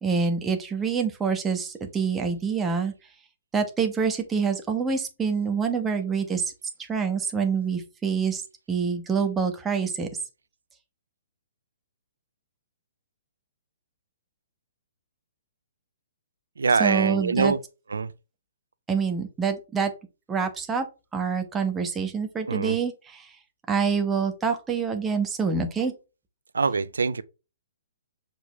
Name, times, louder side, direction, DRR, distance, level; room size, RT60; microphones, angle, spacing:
voice 1, 0.0-2.9 3.5-6.5 6.8-8.4 8.7-10.1 16.8-17.5 18.9-19.9 20.3-20.8 21.1-23.3 23.7-25.9, right 6 dB, 15° right, 1.3 m, -26 dB
voice 2, 16.6-17.6 17.9-18.1 22.5-22.8 26.5-27.2, right 4 dB, 70° right, 0.5 m, -24 dB
6.1 x 5.2 x 3.4 m
figure-of-eight pair, 125°, 0 cm